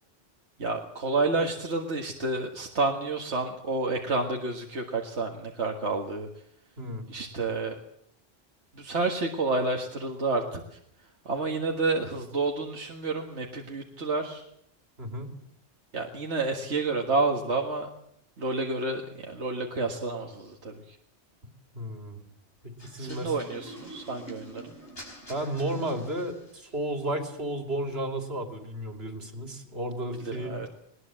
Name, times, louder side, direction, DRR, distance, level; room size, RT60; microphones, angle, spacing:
voice 1, 0.6-6.3 7.1-7.7 8.8-10.8 11.3-14.4 15.9-17.9 18.4-21.0 23.0-24.7 30.2-30.7, right 3 dB, 75° right, 2 dB, 2.1 m, -29 dB
voice 2, 15.0-15.3 21.7-22.2 22.8-23.3 25.3-30.5, right 1 dB, 60° right, 5 dB, 3.1 m, -33 dB
sound 1, 22.8-26.7, equal, 60° left, 5.2 m, -47 dB
20.0 x 20.0 x 7.6 m, 0.70 s
omnidirectional pair, 1.2 m